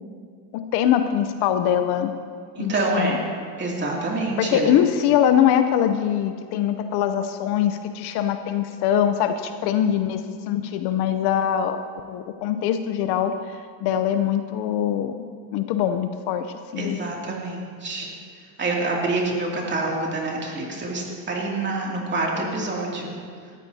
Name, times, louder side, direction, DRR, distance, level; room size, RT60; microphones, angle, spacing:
voice 1, 0.5-2.1 2.6-3.2 4.4-11.8 12.1-17.0, left 10 dB, 55° left, 8 dB, 0.7 m, -23 dB
voice 2, 2.6-3.2 3.6-4.7 13.8-14.0 16.8-18.1 18.6-23.1, right 2 dB, 25° right, -2 dB, 2.6 m, -26 dB
18.5 x 14.0 x 2.8 m, 2.1 s
supercardioid pair, 130°, 47 cm